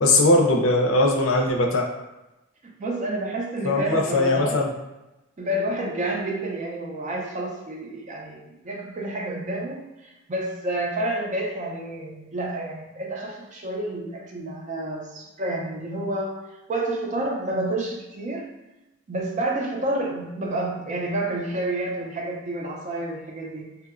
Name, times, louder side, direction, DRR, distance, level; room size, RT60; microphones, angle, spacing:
voice 1, 0.0-1.9 3.6-4.7, left 2 dB, 80° left, 1 dB, 0.5 m, -20 dB
voice 2, 2.6-4.7 5.4-8.4 8.6-18.5 19.1-23.8, right 1 dB, 40° right, 0 dB, 0.4 m, -29 dB
2.7 x 2.1 x 2.4 m, 0.98 s
head